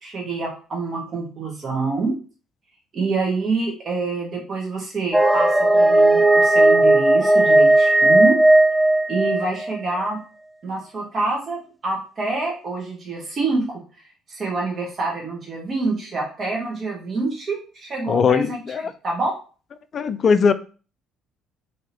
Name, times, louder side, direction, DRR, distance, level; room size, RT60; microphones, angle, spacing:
voice 1, 0.0-2.1 2.9-8.4 9.1-10.2 10.6-13.8 14.3-18.6 19.0-19.3, right 3 dB, 40° right, 1.5 m, -26 dB
sound 1, 5.1-9.8, right 2 dB, 10° right, 0.5 m, -15 dB
voice 2, 18.1-18.9 19.9-20.5, left 6 dB, 45° left, 0.3 m, -19 dB
3.4 x 2.9 x 2.9 m
figure-of-eight pair, 50°, 0 cm